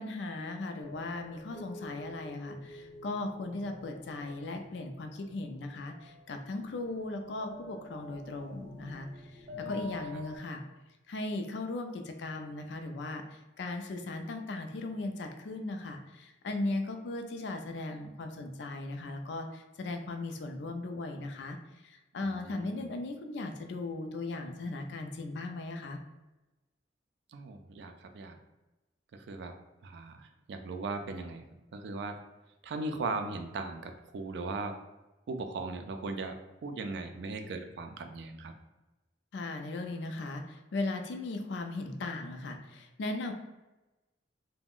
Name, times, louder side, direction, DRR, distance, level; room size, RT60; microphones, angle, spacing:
voice 1, 0.0-10.6 11.1-21.6 21.8-26.0 39.3-43.3, left 2 dB, 70° left, 5 dB, 0.4 m, -37 dB
sound 1, 0.8-10.4, left 2 dB, 40° right, 0.7 m, -47 dB
voice 2, 9.5-9.9 10.1-10.2 22.2-22.7 27.3-28.4 29.1-31.4 31.7-32.2 32.6-34.8 35.3-38.5, right 3 dB, 65° right, 6 dB, 0.3 m, -38 dB
2.4 x 2.1 x 3.5 m, 1.1 s
head